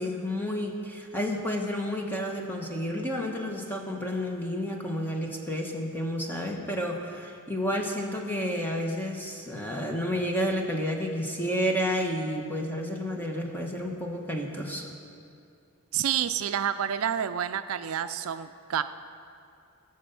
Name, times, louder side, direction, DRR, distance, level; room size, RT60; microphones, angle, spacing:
voice 1, 0.0-14.9, equal, 10° left, 1 dB, 1.2 m, -30 dB
voice 2, 15.9-18.8, right 9 dB, 70° right, 11 dB, 0.4 m, -29 dB
17.5 x 6.8 x 7.0 m, 2.5 s
head